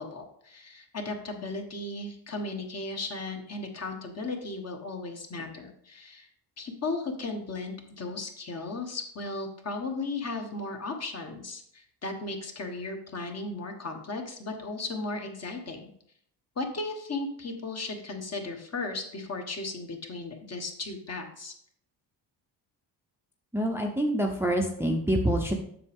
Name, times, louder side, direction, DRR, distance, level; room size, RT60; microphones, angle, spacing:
voice 1, 0.0-6.3 6.6-15.9 16.6-21.5, left 3 dB, 40° left, 3 dB, 1.4 m, -36 dB
voice 2, 23.5-25.5, right 1 dB, 5° right, 2 dB, 0.7 m, -26 dB
7.5 x 6.3 x 3.6 m, 0.67 s
cardioid pair, 115°, 41 cm